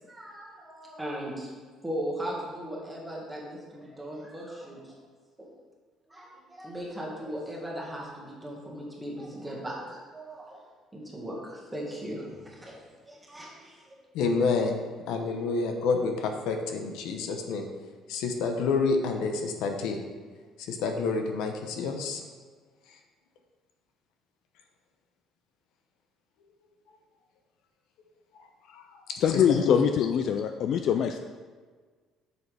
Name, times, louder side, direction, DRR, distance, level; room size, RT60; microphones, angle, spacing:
voice 1, 0.1-1.5 1.8-5.0 5.4-5.5 6.1-10.6 10.9-12.8 13.1-14.0, equal, 5° right, -4 dB, 1.8 m, -38 dB
voice 2, 14.1-17.6 18.1-20.0 20.7-22.2 28.7-28.8 29.6-29.8, left 4 dB, 80° left, 4 dB, 0.9 m, -28 dB
voice 3, 29.2-31.2, left 8 dB, 55° left, 7 dB, 0.4 m, -24 dB
8.2 x 6.8 x 3.5 m, 1.5 s
cardioid pair, 140°, 0 cm